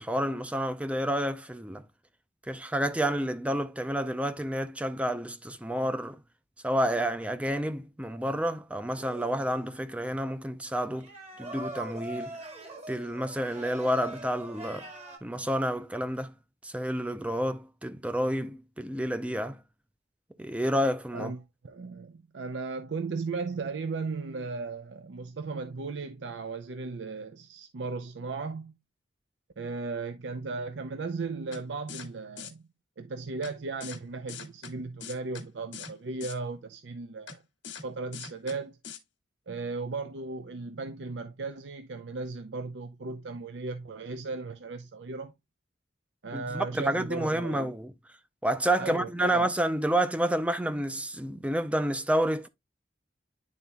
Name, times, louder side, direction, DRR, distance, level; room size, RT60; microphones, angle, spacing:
voice 1, 0.0-1.8 2.5-6.2 6.6-11.1 11.4-12.4 12.9-14.9 15.2-16.3 16.6-19.6 20.4-21.4 46.3-47.9 48.4-52.5, right 1 dB, 5° right, 0.5 m, -29 dB
sound 1, 8.9-9.7 11.0-15.2, right 1 dB, 35° right, 1.7 m, -42 dB
voice 2, 21.1-28.7 29.6-32.7 33.0-37.4 37.8-38.8 39.5-45.3 46.2-47.7 48.8-49.5, right 4 dB, 80° right, 0.5 m, -36 dB
sound 2, 31.5-31.6 31.9-32.1 32.4-32.5 33.4-33.5 33.8-34.0 34.3-34.7 35.0-35.4 35.7-35.9 36.2-36.4 37.3-37.4 37.6-37.8 38.1-38.6 38.8-39.0, left 6 dB, 85° left, 1.4 m, -41 dB
10.5 x 4.1 x 2.2 m
head